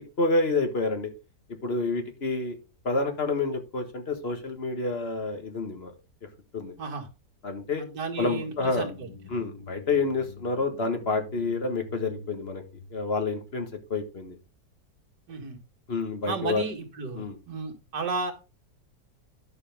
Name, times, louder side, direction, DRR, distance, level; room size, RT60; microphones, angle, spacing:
voice 1, 0.2-1.1 1.6-2.6 2.8-5.9 6.5-6.7 7.4-7.8 8.2-8.9 9.3-12.6 12.9-14.4 15.9-16.6 17.1-17.4, left 3 dB, 35° left, 6 dB, 1.7 m, -28 dB
voice 2, 7.8-9.1 15.3-15.6 16.3-18.3, right 4 dB, 75° right, 1 dB, 2.6 m, -33 dB
sound 1, 8.1-14.1, left 3 dB, 80° left, 2.6 m, -47 dB
10.5 x 6.8 x 3.5 m, 0.30 s
omnidirectional pair, 1.8 m